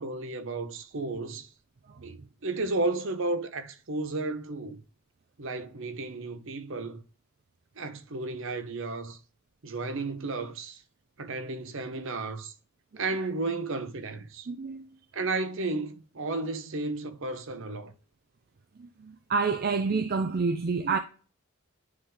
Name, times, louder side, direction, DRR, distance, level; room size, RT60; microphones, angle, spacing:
voice 1, 0.0-1.5 2.0-4.8 5.4-7.0 7.8-9.2 9.6-10.8 11.2-12.5 13.0-14.5 15.1-17.9, right 3 dB, 60° right, 0.9 m, -33 dB
voice 2, 14.5-14.8 18.8-21.0, right 4 dB, 45° right, 0.4 m, -28 dB
9.7 x 3.6 x 3.4 m
head